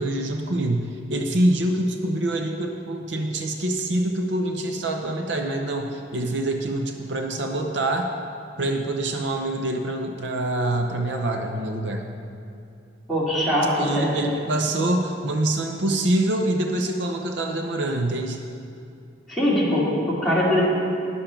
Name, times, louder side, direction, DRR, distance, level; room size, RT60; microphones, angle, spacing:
voice 1, 0.0-8.1 8.6-12.0 13.8-18.4, right 1 dB, 70° right, 3 dB, 0.7 m, -25 dB
voice 2, 13.1-14.4 19.3-20.6, left 1 dB, ahead, -9 dB, 2.5 m, -22 dB
10.0 x 7.0 x 5.8 m, 2.5 s
head